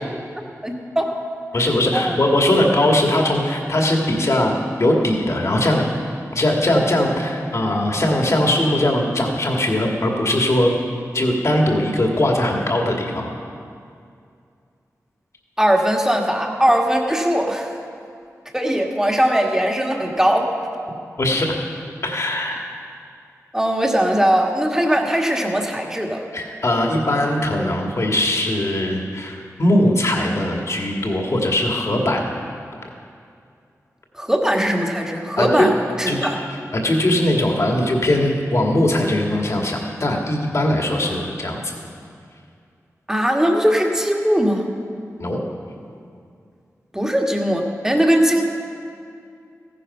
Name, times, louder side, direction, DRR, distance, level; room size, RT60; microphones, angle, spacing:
voice 1, 0.6-1.1 1.9-2.2 15.6-17.7 18.5-20.5 23.5-26.2 34.2-35.7 36.0-36.4 43.1-44.7 46.9-48.4, equal, 10° right, 1 dB, 1.8 m, -19 dB
voice 2, 1.5-4.5 4.8-5.8 6.3-10.7 11.1-13.3 21.2-21.6 22.0-22.6 26.3-32.3 35.4-35.7 36.1-36.2 36.7-41.6 45.2-45.4, left 1 dB, 55° left, 0 dB, 2.1 m, -20 dB
14.5 x 10.0 x 5.6 m, 2.4 s
cardioid pair, 50°, 6 cm